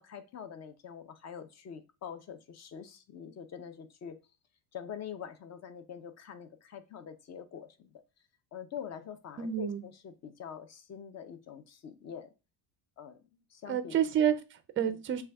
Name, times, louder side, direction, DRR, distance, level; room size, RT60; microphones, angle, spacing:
voice 1, 0.0-4.2 4.7-8.0 8.5-12.3 13.0-13.2 13.5-14.0 14.8-15.0, left 8 dB, 35° left, 9 dB, 0.5 m, -45 dB
voice 2, 9.4-9.8 13.7-15.2, right 9 dB, 30° right, 11 dB, 0.4 m, -29 dB
6.1 x 2.4 x 3.3 m, 0.29 s
cardioid pair, 150°, 49 cm